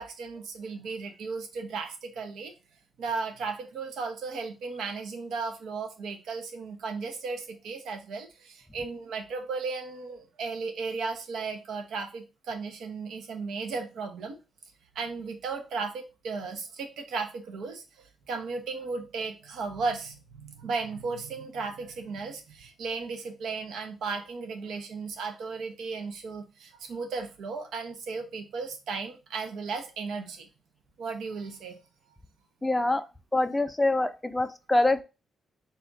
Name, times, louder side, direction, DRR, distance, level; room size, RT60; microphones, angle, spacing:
voice 1, 0.0-2.5 3.0-14.4 14.9-30.5 31.0-31.8 32.1-32.2, right 4 dB, 75° right, 6 dB, 0.8 m, -35 dB
voice 2, 32.6-33.0 33.3-35.0, left 2 dB, 10° left, 10 dB, 0.5 m, -25 dB
4.2 x 2.4 x 4.0 m, 0.29 s
supercardioid pair, 60°, 0 cm